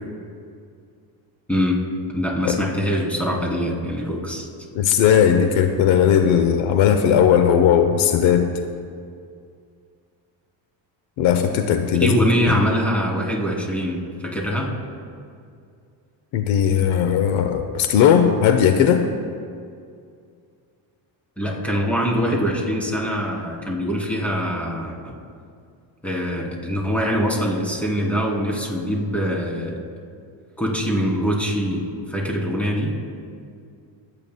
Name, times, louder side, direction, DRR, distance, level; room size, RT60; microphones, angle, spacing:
voice 1, 2.1-4.5 12.0-14.7 21.4-25.2 26.0-29.8 30.6-32.9, equal, 5° left, -3 dB, 2.9 m, -23 dB
voice 2, 4.7-8.5 11.2-12.1 12.5-12.6 16.3-19.1, left 8 dB, 75° left, 7 dB, 0.8 m, -17 dB
26.0 x 8.8 x 2.2 m, 2.3 s
cardioid pair, 95°, 48 cm